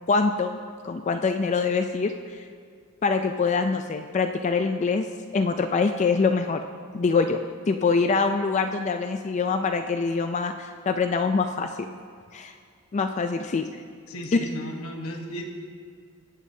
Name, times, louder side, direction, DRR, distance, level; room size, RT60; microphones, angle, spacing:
voice 1, 0.1-0.6 0.8-2.4 3.0-5.1 5.3-6.6 6.9-7.4 7.7-11.9 12.3-12.5 12.9-13.7, left 4 dB, 30° left, 6 dB, 0.3 m, -24 dB
voice 2, 14.1-15.5, equal, 75° left, 2 dB, 1.2 m, -35 dB
21.0 x 8.1 x 2.7 m, 2.2 s
head